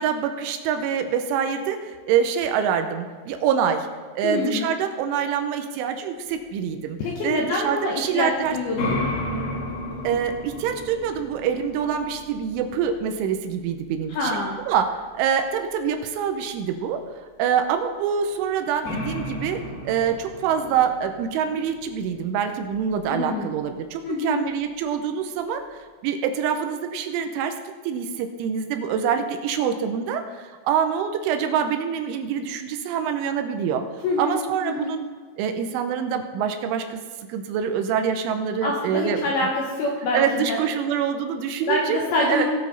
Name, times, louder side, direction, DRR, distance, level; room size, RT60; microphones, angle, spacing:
voice 1, 0.0-3.9 4.2-7.0 7.2-8.6 10.0-14.4 14.7-17.0 17.4-19.6 19.8-27.5 27.8-33.9 34.2-35.0 35.4-37.0 37.3-39.2 40.1-42.0 42.3-42.4, right 7 dB, 85° right, 6 dB, 3.1 m, -25 dB
voice 2, 4.2-4.7 7.0-9.0 14.1-14.6 23.1-23.5 24.0-24.4 34.0-34.4 34.6-34.9 38.6-39.5 39.8-40.6 41.7-42.4, left 2 dB, 75° left, -1 dB, 2.4 m, -25 dB
sound 1, 8.3-15.0 18.3-18.4 18.8-23.2, left 1 dB, 55° left, 2.6 m, -34 dB
18.0 x 6.4 x 4.0 m, 1.5 s
omnidirectional pair, 5.8 m